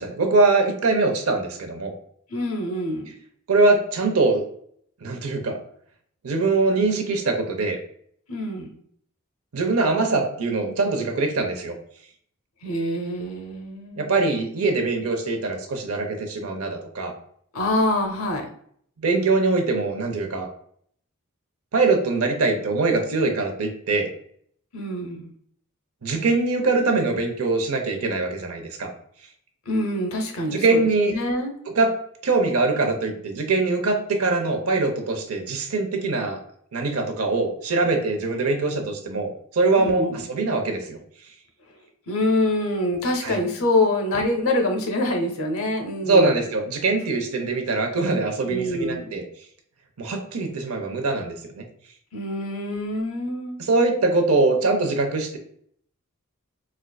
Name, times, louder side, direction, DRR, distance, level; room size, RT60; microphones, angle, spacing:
voice 1, 0.0-1.9 3.5-4.4 5.0-5.6 6.2-7.8 9.5-11.8 14.0-17.1 19.0-20.5 21.7-24.1 26.0-28.9 30.5-31.1 31.7-31.9 32.2-36.4 36.7-41.0 43.2-43.4 46.1-49.3 50.0-51.6 53.6-55.4, right 3 dB, 90° right, 4 dB, 0.6 m, -22 dB
voice 2, 2.3-3.1 8.3-8.7 12.6-14.2 17.5-18.5 24.7-25.3 29.7-30.8 31.1-31.5 39.8-40.2 42.1-46.3 48.4-49.2 52.1-53.6, left 1 dB, 75° left, 3 dB, 0.7 m, -25 dB
4.3 x 2.4 x 2.2 m, 0.64 s
head